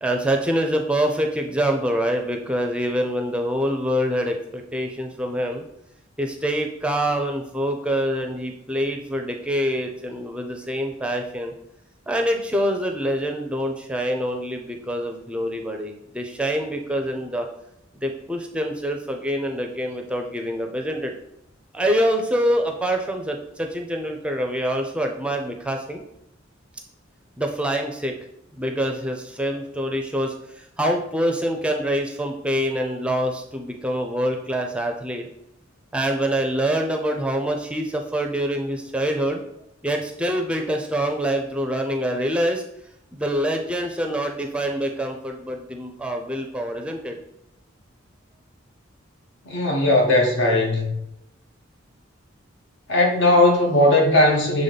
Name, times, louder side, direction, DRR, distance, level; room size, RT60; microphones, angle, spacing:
voice 1, 0.0-5.6 6.2-11.5 12.1-17.5 17.9-21.1 21.7-26.0 27.4-28.1 28.5-35.3 35.9-39.4 39.8-42.6 43.1-47.1, equal, 5° right, 0.5 m, -25 dB
voice 2, 49.4-50.9 52.9-54.6, left 1 dB, 65° left, 1.2 m, -18 dB
6.8 x 3.5 x 4.0 m
head